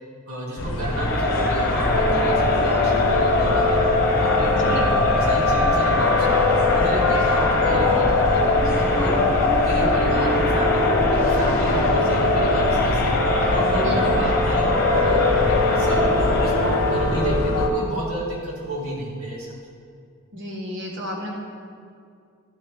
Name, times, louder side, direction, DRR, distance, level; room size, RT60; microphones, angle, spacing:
voice 1, 0.3-3.8 4.2-9.2 9.6-13.1 13.5-16.0 16.4-19.5, right 1 dB, 80° right, -5 dB, 2.3 m, -31 dB
sound 1, 0.6-17.7, left 2 dB, 65° left, 0.8 m, -23 dB
Crowd, 0.9-17.0, left 2 dB, 45° left, 1.1 m, -22 dB
voice 2, 4.5-5.0 13.8-14.1 20.3-21.3, left 1 dB, 60° right, -1 dB, 1.5 m, -32 dB
12.0 x 6.0 x 3.6 m, 2.3 s
head